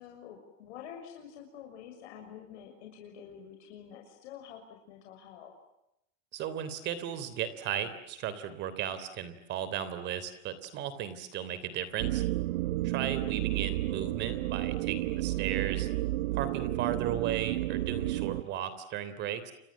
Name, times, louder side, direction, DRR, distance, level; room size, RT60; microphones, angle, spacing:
voice 1, 0.0-5.5 12.8-13.3, left 8 dB, 60° left, 2 dB, 6.6 m, -48 dB
voice 2, 6.3-12.2 12.8-15.9 16.3-19.5, right 9 dB, 30° right, 13 dB, 3.3 m, -35 dB
sound 1, 12.0-18.4, right 17 dB, 60° right, 1.0 m, -31 dB
30.0 x 26.0 x 7.4 m, 0.83 s
supercardioid pair, 170°, 38 cm